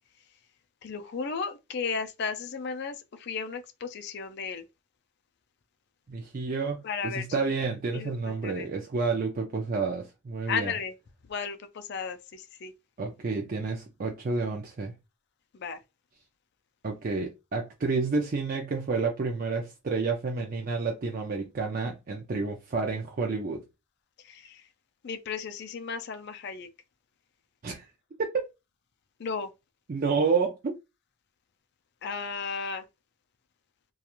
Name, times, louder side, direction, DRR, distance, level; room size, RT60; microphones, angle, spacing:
voice 1, 0.8-4.6 6.8-7.5 7.9-8.7 10.5-10.9 11.3-12.7 15.5-15.8 24.2-24.7 25.0-26.7 29.2-29.5 32.0-32.8, left 5 dB, 50° left, 0.4 m, -34 dB
voice 2, 6.1-10.7 13.0-14.9 16.8-23.6 27.6-27.9 28.2-28.4 29.9-30.8, right 4 dB, 40° right, 0.4 m, -30 dB
2.4 x 2.3 x 2.9 m
head